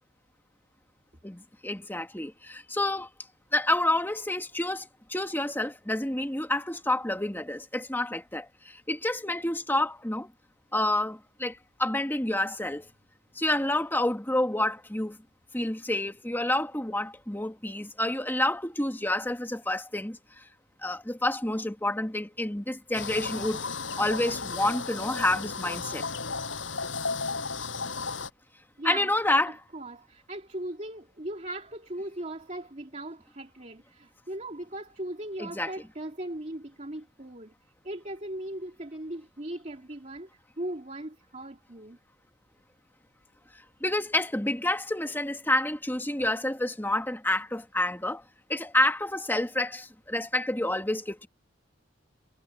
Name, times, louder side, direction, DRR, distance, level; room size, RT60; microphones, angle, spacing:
voice 1, 1.2-3.1 3.5-10.3 10.7-12.9 13.4-15.2 15.5-20.2 20.8-23.6 24.0-26.1 28.8-29.6 35.4-35.7 43.8-48.2 48.5-51.3, left 1 dB, 10° left, 2.0 m, -29 dB
sound 1, 22.9-28.3, left 4 dB, 80° left, 6.8 m, -34 dB
voice 2, 28.8-29.1 29.7-37.5 37.8-40.3 40.6-42.0, right 1 dB, 40° right, 2.8 m, -38 dB
head